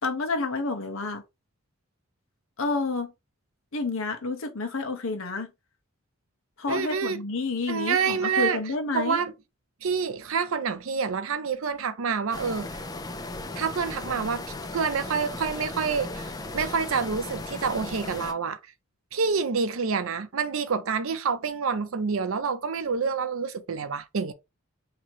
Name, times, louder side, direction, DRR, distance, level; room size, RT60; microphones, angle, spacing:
voice 1, 0.0-1.2 2.6-3.1 3.7-5.5 6.6-9.2, left 3 dB, 65° left, 0.9 m, -29 dB
voice 2, 6.7-7.2 7.7-8.6 8.9-9.3 9.8-12.8 13.6-18.6 19.1-24.3, right 5 dB, 70° right, 0.5 m, -27 dB
sound 1, 12.3-18.3, left 2 dB, 15° left, 0.3 m, -36 dB
2.9 x 2.9 x 4.4 m
head